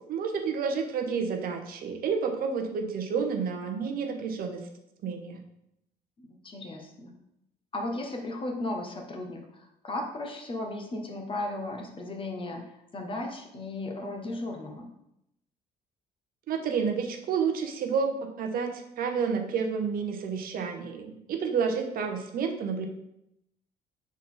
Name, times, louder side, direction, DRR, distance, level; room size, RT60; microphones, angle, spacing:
voice 1, 0.1-4.6 5.0-5.4 16.5-22.9, right 6 dB, 60° right, 4 dB, 0.9 m, -30 dB
voice 2, 6.2-7.1 7.7-12.6 12.9-14.9, left 2 dB, 30° left, 2 dB, 1.1 m, -35 dB
6.3 x 4.0 x 3.8 m, 0.81 s
cardioid pair, 110°, 17 cm